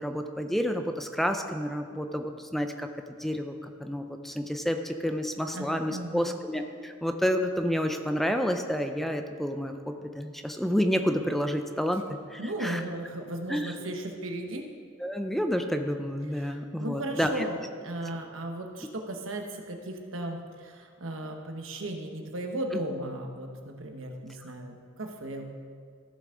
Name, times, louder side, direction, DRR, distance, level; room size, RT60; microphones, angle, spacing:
voice 1, 0.0-2.9 3.2-3.5 3.8-9.7 10.2-12.0 12.3-12.8 13.5-13.7 15.0-17.5, equal, ahead, 6 dB, 0.4 m, -29 dB
voice 2, 5.5-6.4 12.4-14.7 16.3-25.5, right 1 dB, 85° right, 3 dB, 1.2 m, -36 dB
15.0 x 7.0 x 3.8 m, 2.1 s
head